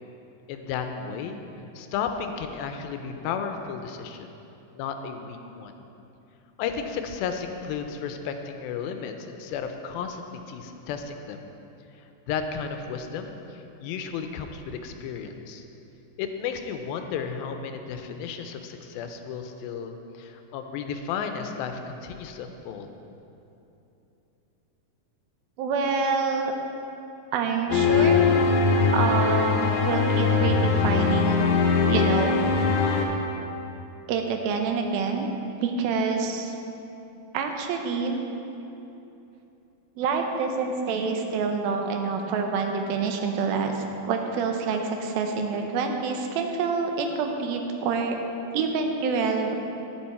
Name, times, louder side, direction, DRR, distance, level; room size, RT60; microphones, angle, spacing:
voice 1, 0.5-1.4 1.8-4.3 4.7-5.7 6.6-11.4 12.3-15.6 16.2-22.9, left 6 dB, 85° left, 6 dB, 2.4 m, -33 dB
voice 2, 25.6-26.5 27.3-28.2 28.9-31.5 31.9-32.4 34.1-35.3 35.6-36.5 37.3-38.2 40.0-48.2 48.5-49.6, right 5 dB, 80° right, 4 dB, 2.6 m, -27 dB
sound 1, 27.7-33.0, left 5 dB, 70° left, 1.9 m, -21 dB
10.0 x 10.0 x 4.3 m, 2.9 s
omnidirectional pair, 4.3 m